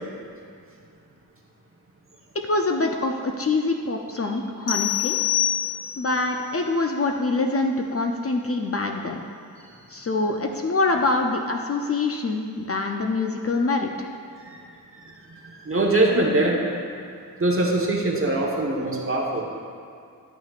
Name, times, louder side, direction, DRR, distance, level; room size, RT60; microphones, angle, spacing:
voice 1, 2.5-5.2 6.0-9.2 9.9-14.1, left 3 dB, 40° left, 3 dB, 0.5 m, -25 dB
sound 1, 4.7-6.2, left 12 dB, 85° left, 0.6 m, -25 dB
voice 2, 14.9-16.8 17.4-19.5, right 2 dB, 35° right, -2 dB, 1.2 m, -23 dB
11.5 x 6.0 x 2.5 m, 2.3 s
wide cardioid pair, 75°, 37 cm